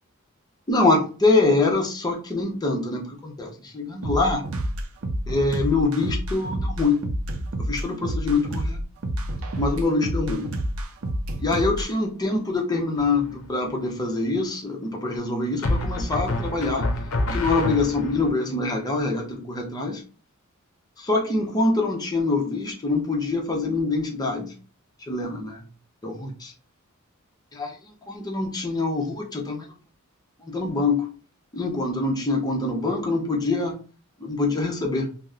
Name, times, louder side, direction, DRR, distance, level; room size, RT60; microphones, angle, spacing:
voice 1, 0.7-4.4 5.3-7.0 7.6-8.8 9.6-10.5 11.4-16.9 17.3-20.0 21.0-24.5 25.0-25.6 26.0-26.5 27.5-29.7 30.4-31.1 31.5-33.8 34.2-35.1, left 3 dB, 20° left, 1 dB, 0.7 m, -24 dB
sound 1, 4.0-11.9, right 1 dB, 70° right, 0.5 m, -28 dB
sound 2, 13.0-13.5 15.6-18.3, left 1 dB, 70° left, 0.6 m, -27 dB
2.8 x 2.0 x 3.6 m, 0.36 s
head